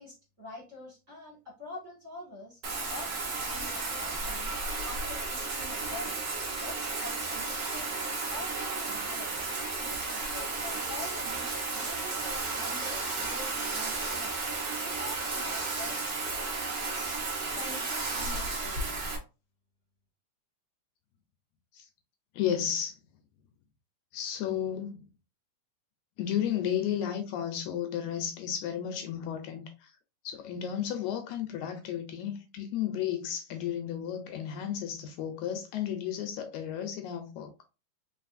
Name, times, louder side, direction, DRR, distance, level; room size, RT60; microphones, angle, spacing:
voice 1, 0.0-2.6 2.9-4.5 4.8-6.2 6.6-7.9 8.2-9.4 9.8-16.0 16.3-16.5 17.5-18.9, left 2 dB, 30° right, 1.7 m, -46 dB
Bathtub (filling or washing), 2.6-19.2, right 3 dB, 85° right, 0.8 m, -33 dB
voice 2, 22.3-23.0 24.1-25.1 26.2-29.9 30.2-37.6, left 9 dB, 80° left, 1.9 m, -33 dB
4.1 x 3.9 x 2.5 m
omnidirectional pair, 3.6 m